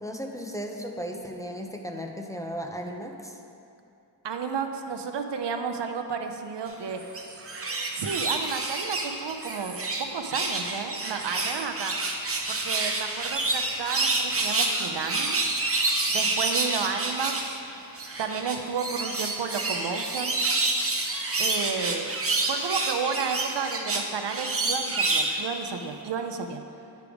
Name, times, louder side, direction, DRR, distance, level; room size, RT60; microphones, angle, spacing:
voice 1, 0.0-3.4, equal, 10° left, 1 dB, 0.5 m, -35 dB
voice 2, 4.2-7.0 7.9-11.9 12.5-15.4 16.1-17.6 18.2-20.4 21.4-22.1 22.4-26.6, right 6 dB, 85° right, 5 dB, 0.6 m, -32 dB
sound 1, 7.0-10.1 10.3-17.5 17.9-25.4 25.8-25.9, right 2 dB, 35° right, 0.7 m, -28 dB
10.5 x 3.5 x 4.8 m, 2.7 s
wide cardioid pair, 80°, 41 cm